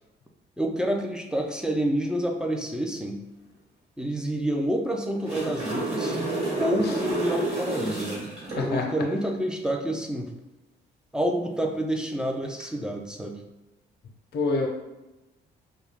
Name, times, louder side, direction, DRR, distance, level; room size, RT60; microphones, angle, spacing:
voice 1, 0.6-3.2 4.0-6.2 6.6-10.3 11.1-13.4, right 1 dB, 5° right, 2 dB, 0.4 m, -28 dB
sound 1, 5.0-8.6 12.4-12.6, right 2 dB, 30° right, 1.2 m, -30 dB
voice 2, 8.5-8.9 14.3-14.7, left 3 dB, 55° left, 1 dB, 0.6 m, -26 dB
2.3 x 2.2 x 3.3 m, 1.0 s
cardioid pair, 90°, 20 cm